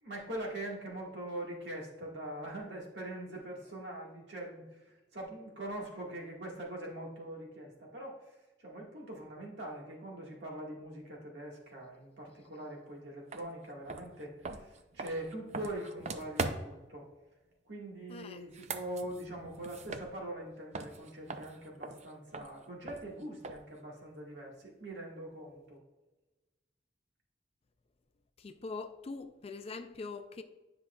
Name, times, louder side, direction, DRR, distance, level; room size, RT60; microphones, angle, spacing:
voice 1, 0.0-17.1 17.6-25.8, right 1 dB, 70° right, 1.7 m, -43 dB
sound 1, 13.3-13.4 13.9-16.9 18.4-20.5 20.7-23.8, right 3 dB, 35° right, 0.4 m, -41 dB
voice 2, 18.1-18.4 28.4-30.4, left 3 dB, 35° left, 0.4 m, -43 dB
9.9 x 5.7 x 2.3 m
head